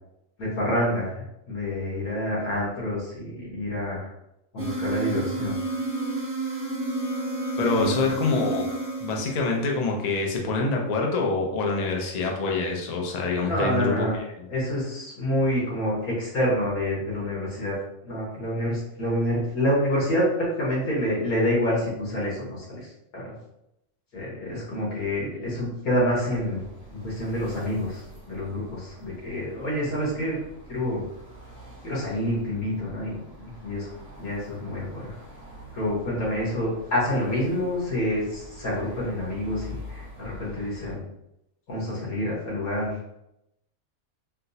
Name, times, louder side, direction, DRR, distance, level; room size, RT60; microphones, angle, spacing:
voice 1, 0.4-4.1 4.5-5.6 7.8-8.1 13.4-14.2 14.5-17.8 18.0-23.3 24.1-26.6 27.0-30.4 30.7-31.0 31.8-33.9 34.2-35.1 35.7-41.0 41.7-43.0, left 1 dB, 85° left, -6 dB, 1.8 m, -27 dB
sound 1, 4.6-9.9, right 3 dB, 20° right, 0.4 m, -30 dB
voice 2, 7.6-8.7 9.0-14.3, left 3 dB, 65° left, 0 dB, 0.4 m, -26 dB
sound 2, 26.3-41.0, equal, 35° left, 0.7 m, -45 dB
4.3 x 2.1 x 2.7 m, 0.85 s
omnidirectional pair, 1.5 m